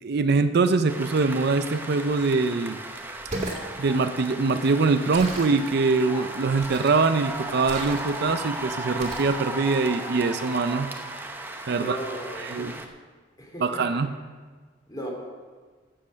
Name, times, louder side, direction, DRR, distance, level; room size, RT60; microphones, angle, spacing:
voice 1, 0.0-2.8 3.8-10.9 11.7-12.0 12.4-12.7 13.6-14.2, right 4 dB, 55° right, 9 dB, 0.5 m, -23 dB
sound 1, 0.9-12.9, right 2 dB, 10° right, 0.7 m, -36 dB
sound 2, 3.2-3.7 5.1-5.6 6.6-7.1 7.6-8.3 9.0-9.4, right 1 dB, 35° right, 2.1 m, -35 dB
voice 2, 11.7-12.7 13.4-14.0 14.9-15.1, equal, 20° left, -1 dB, 2.7 m, -36 dB
13.0 x 7.7 x 6.3 m, 1.5 s
head